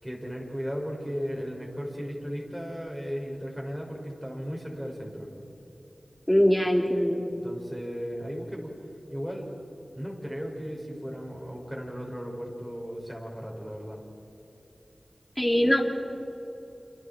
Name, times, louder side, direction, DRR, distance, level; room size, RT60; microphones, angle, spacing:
voice 1, 0.0-5.3 7.4-8.7 9.1-9.5 10.0-14.0, equal, 10° right, -1 dB, 6.2 m, -36 dB
voice 2, 6.3-7.2 15.4-15.8, equal, 10° left, 0 dB, 3.5 m, -22 dB
29.0 x 27.5 x 4.6 m, 3.0 s
wide cardioid pair, 60°, 0 cm